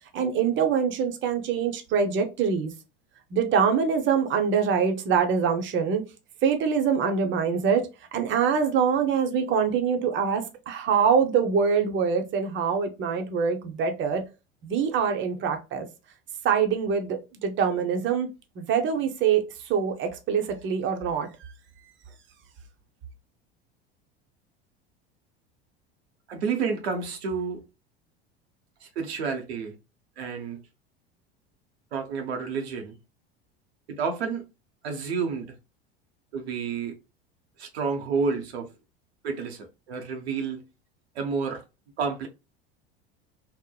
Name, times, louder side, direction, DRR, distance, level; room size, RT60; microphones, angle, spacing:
voice 1, 0.1-2.7 3.3-6.0 6.4-7.8 8.1-14.2 14.6-15.9 16.4-18.3 18.6-19.4 19.7-21.3, right 6 dB, 40° right, 0.7 m, -24 dB
voice 2, 26.3-27.6 28.8-29.7 30.2-30.6 31.9-33.0 33.9-34.4 34.8-35.6 36.3-37.0 37.6-38.7 39.2-40.6 41.2-41.6 42.0-42.3, right 5 dB, 85° right, 0.7 m, -30 dB
2.8 x 2.0 x 2.2 m
hypercardioid pair, 80°, 31 cm